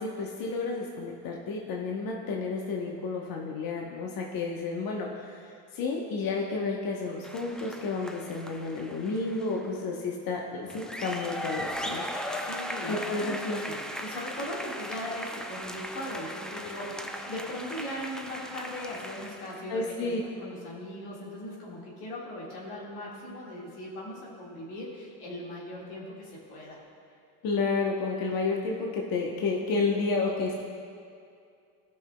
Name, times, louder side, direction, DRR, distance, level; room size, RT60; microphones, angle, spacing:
voice 1, 0.0-12.0 12.9-13.6 19.7-20.2 27.4-30.6, left 3 dB, 50° left, 0 dB, 1.0 m, -31 dB
sound 1, 7.2-9.7 10.6-19.6, equal, ahead, 0.5 m, -38 dB
voice 2, 12.4-26.8, left 1 dB, 80° left, -4 dB, 2.0 m, -39 dB
14.5 x 5.7 x 2.2 m, 2.4 s
hypercardioid pair, 75°, 44 cm